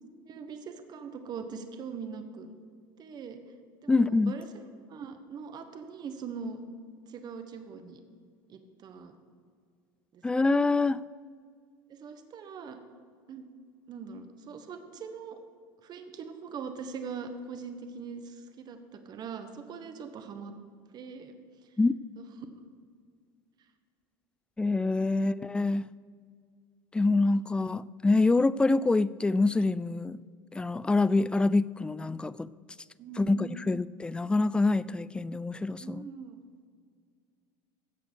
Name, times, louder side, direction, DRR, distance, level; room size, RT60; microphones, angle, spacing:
voice 1, 0.3-2.5 3.0-3.4 3.8-4.5 4.9-6.6 7.1-8.0 8.5-9.1 10.1-10.2 11.9-12.8 13.3-13.5 13.9-15.4 15.8-20.5 20.9-21.7 22.2-22.3 33.0-33.6 35.8-36.4, right 5 dB, 40° right, 1.3 m, -42 dB
voice 2, 3.9-4.3 10.2-11.0 21.8-21.9 24.6-25.9 26.9-30.2 30.5-32.5 33.2-36.1, left 3 dB, 10° left, 0.3 m, -26 dB
15.5 x 5.9 x 6.4 m
hypercardioid pair, 95°, 11 cm